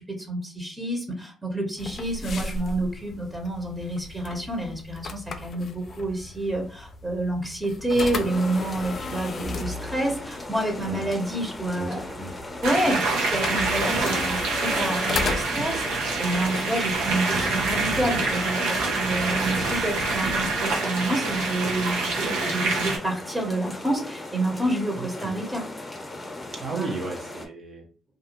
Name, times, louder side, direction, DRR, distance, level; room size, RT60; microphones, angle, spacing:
voice 1, 0.3-12.0 12.6-13.0 13.3-15.8 16.2-25.6 26.7-26.9, right 1 dB, 15° right, 1 dB, 0.8 m, -28 dB
sound 1, 1.8-20.7, left 3 dB, 55° left, 0.4 m, -37 dB
sound 2, 8.3-27.5, left 2 dB, 20° left, 0.8 m, -38 dB
voice 2, 11.8-12.3 25.0-25.3 26.5-27.9, right 3 dB, 55° right, 1 dB, 0.7 m, -35 dB
sound 3, 12.6-23.0, right 3 dB, 90° right, 0.8 m, -26 dB
2.5 x 2.2 x 2.9 m, 0.38 s
supercardioid pair, 70°, 0 cm